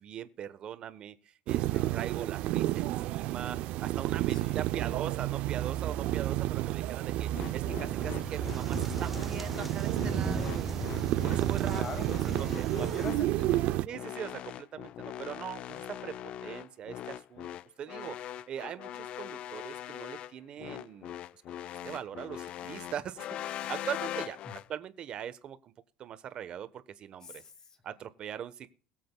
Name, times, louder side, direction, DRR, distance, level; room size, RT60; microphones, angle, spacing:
voice 1, 0.0-10.8 11.2-12.9 13.9-16.1 16.4-17.5 17.8-21.4 21.8-24.4 24.7-25.7 26.0-26.7 27.0-27.4 27.8-28.7, right 9 dB, 40° right, 1.1 m, -41 dB
sound 1, 1.5-13.9, right 15 dB, 60° right, 0.5 m, -31 dB
voice 2, 1.7-2.0 4.3-4.6 11.7-14.0 24.4-24.6 27.2-27.8, left 4 dB, 30° left, 2.1 m, -44 dB
sound 2, 7.3-24.7, left 11 dB, 45° left, 0.4 m, -41 dB
sound 3, 7.9-13.1, right 1 dB, 5° right, 0.8 m, -39 dB
21.5 x 7.7 x 2.3 m
cardioid pair, 130°, 2 cm